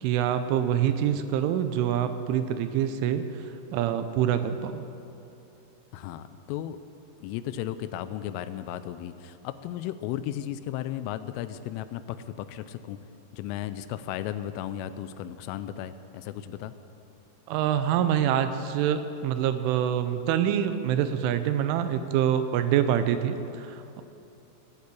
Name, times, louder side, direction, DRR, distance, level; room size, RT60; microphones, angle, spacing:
voice 1, 0.0-3.3 3.7-4.8 17.5-24.0, right 10 dB, 80° right, 10 dB, 3.1 m, -26 dB
voice 2, 0.8-1.2 5.9-6.8 7.2-13.0 13.3-16.7, left 11 dB, 85° left, 12 dB, 3.1 m, -35 dB
17.0 x 8.2 x 8.4 m, 2.8 s
omnidirectional pair, 5.6 m